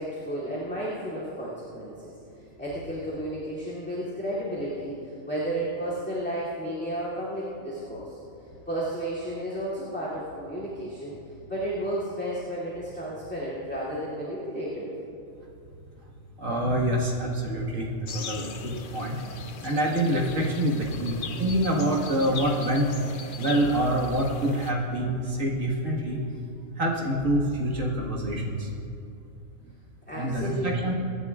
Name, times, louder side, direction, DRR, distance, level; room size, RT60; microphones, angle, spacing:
voice 1, 0.0-8.2 8.7-11.1 11.5-14.9 30.1-30.9, right 1 dB, 5° left, -11 dB, 2.7 m, -33 dB
voice 2, 16.4-19.2 19.6-22.9 23.4-26.2 26.8-28.7 30.1-30.9, right 1 dB, 65° right, -2 dB, 2.1 m, -26 dB
sound 1, 18.1-24.7, left 6 dB, 50° left, 0.7 m, -40 dB
25.5 x 11.0 x 2.4 m, 2.7 s
omnidirectional pair, 1.4 m